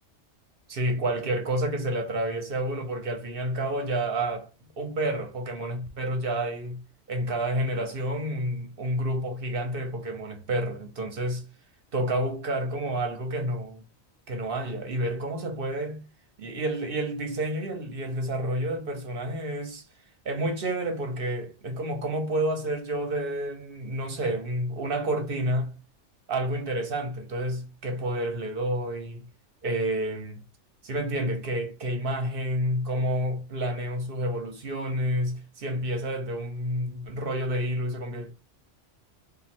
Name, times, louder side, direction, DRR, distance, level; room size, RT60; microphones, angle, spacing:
voice 1, 0.7-4.5 4.8-6.8 7.1-11.4 11.9-13.8 14.3-16.0 16.4-19.8 20.2-25.8 26.3-29.2 29.6-30.4 30.8-38.3, right 1 dB, 55° right, 0.8 m, -29 dB
3.0 x 2.5 x 4.2 m
omnidirectional pair, 1.2 m